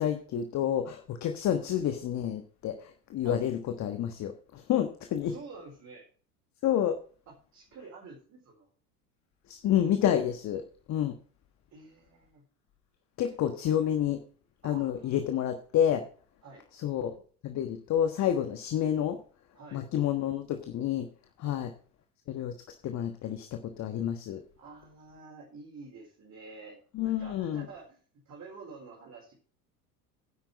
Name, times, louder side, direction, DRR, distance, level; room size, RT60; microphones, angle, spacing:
voice 1, 0.0-5.3 6.6-7.0 9.5-10.6 10.9-11.1 13.2-14.2 14.6-16.0 16.8-17.1 17.4-19.2 19.7-21.1 21.4-21.7 22.3-22.5 22.8-24.4 26.9-27.6, left 10 dB, 35° left, 7 dB, 1.4 m, -29 dB
voice 2, 5.2-6.1 7.3-8.7 11.7-12.4 13.3-13.6 14.6-15.2 16.4-16.6 19.5-19.8 21.4-21.6 24.6-28.0 28.3-29.3, right 4 dB, 35° right, -2 dB, 4.4 m, -49 dB
10.5 x 8.5 x 4.8 m, 0.42 s
figure-of-eight pair, 70°, 46 cm